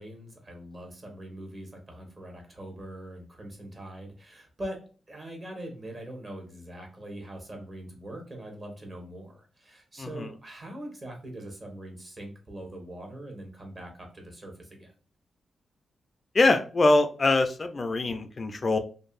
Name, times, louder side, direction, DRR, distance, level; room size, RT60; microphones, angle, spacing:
voice 1, 0.0-4.8 5.1-14.9, right 1 dB, 40° right, 3 dB, 1.1 m, -42 dB
voice 2, 10.0-10.3 16.3-18.8, left 2 dB, 40° left, 8 dB, 0.3 m, -23 dB
2.6 x 2.5 x 2.3 m, 0.38 s
cardioid pair, 75°, 0 cm